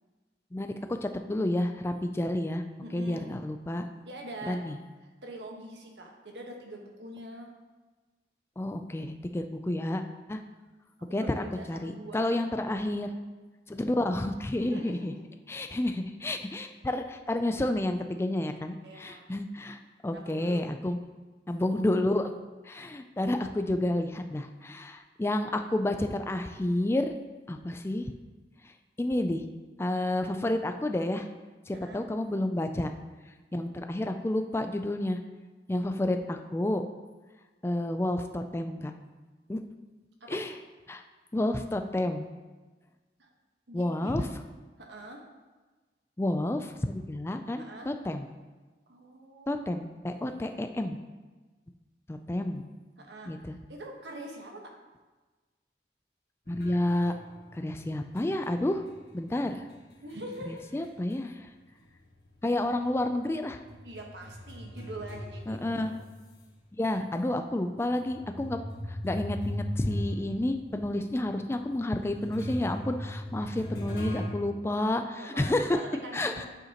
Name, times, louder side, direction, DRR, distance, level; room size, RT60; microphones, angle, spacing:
voice 1, 1.0-2.6 2.9-3.9 4.4-4.8 8.6-10.0 10.3-10.4 11.1-13.1 13.7-15.1 15.5-21.0 21.5-22.3 22.6-27.1 27.5-28.1 29.0-29.4 29.8-31.3 31.7-32.9 33.5-35.2 35.7-36.8 37.6-38.9 39.5-39.6 40.3-40.5 40.9-41.0 41.3-42.3 43.7-44.3 46.2-48.3 49.5-51.0 52.1-52.7 53.3-53.6 56.5-57.1 57.5-58.8 59.1-59.6 60.5-61.5 62.4-63.6 65.5-65.9 66.7-68.6 68.9-75.8 76.1-76.5, left 1 dB, 15° left, 6 dB, 0.3 m, -30 dB
voice 2, 2.8-3.4 4.0-4.6 5.2-7.5 11.1-12.3 14.6-15.2 18.8-19.3 20.1-20.6 31.7-32.0 40.2-40.4 43.2-43.3 43.7-44.4 44.8-45.2 47.6-47.9 48.9-49.5 53.0-53.3 53.7-54.6 60.0-60.9 63.8-65.8 73.4-73.5 75.2-76.5, right 1 dB, 80° right, 1 dB, 1.3 m, -44 dB
sound 1, 56.5-61.5 61.8-66.4 67.0-67.1 67.9-74.3, left 1 dB, 60° left, 1.7 m, -39 dB
9.0 x 7.7 x 2.9 m, 1.3 s
head